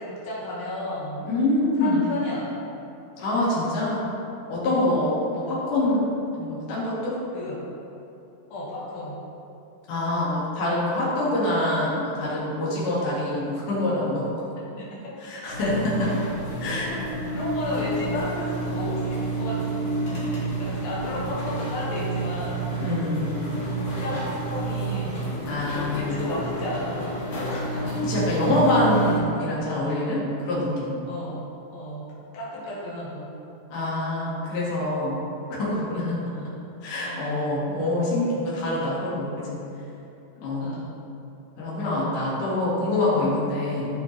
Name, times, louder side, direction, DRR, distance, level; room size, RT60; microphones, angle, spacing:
voice 1, 0.0-1.2 1.8-2.5 4.7-5.0 7.3-7.6 8.5-9.2 14.8-15.2 17.3-20.2 20.6-22.6 24.0-25.3 25.9-27.1 27.4-27.9 31.1-31.5 31.7-32.0 32.3-33.3 36.3-36.5 37.0-37.4 40.4-40.9, left 1 dB, 85° left, -8 dB, 3.5 m, -33 dB
voice 2, 1.3-2.0 3.2-4.0 4.5-6.1 6.4-7.1 9.9-14.3 15.2-16.1 16.6-16.9 22.8-23.4 25.5-26.2 28.0-30.9 33.7-35.2 35.5-36.2 36.8-39.6 40.4-40.7 41.6-43.9, left 1 dB, 65° left, -8 dB, 3.4 m, -25 dB
sound 1, 15.5-29.2, right 2 dB, 45° left, 2.7 m, -29 dB
14.0 x 5.8 x 3.3 m, 2.8 s
omnidirectional pair, 4.0 m